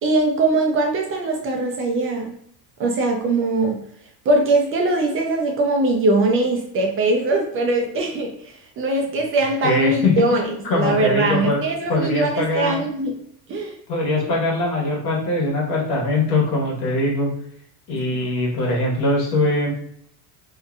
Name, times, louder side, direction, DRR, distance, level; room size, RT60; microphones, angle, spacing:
voice 1, 0.0-2.3 2.8-3.8 4.3-13.1 13.5-13.8 18.1-18.3, right 2 dB, 35° right, 1 dB, 0.4 m, -21 dB
voice 2, 9.6-11.6 11.9-12.9 13.9-17.3 17.9-19.7, left 2 dB, 60° left, -3 dB, 1.3 m, -22 dB
2.7 x 2.1 x 2.4 m, 0.67 s
supercardioid pair, 115°, 40 cm